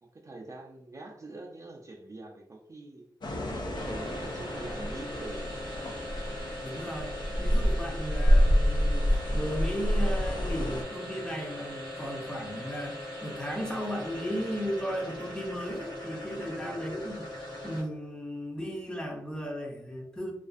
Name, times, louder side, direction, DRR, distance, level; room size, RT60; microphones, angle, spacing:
voice 1, 0.0-3.1 3.5-5.6 16.3-16.8, right 2 dB, 40° right, 0 dB, 0.4 m, -45 dB
sound 1, 3.2-10.8, equal, 60° left, 0.4 m, -28 dB
sound 2, 3.7-18.1, left 1 dB, 80° left, 1.0 m, -40 dB
voice 2, 6.6-12.9 13.2-17.2 17.6-20.3, equal, 10° left, -1 dB, 0.6 m, -35 dB
2.4 x 2.3 x 2.4 m, 0.78 s
wide cardioid pair, 70°, 8 cm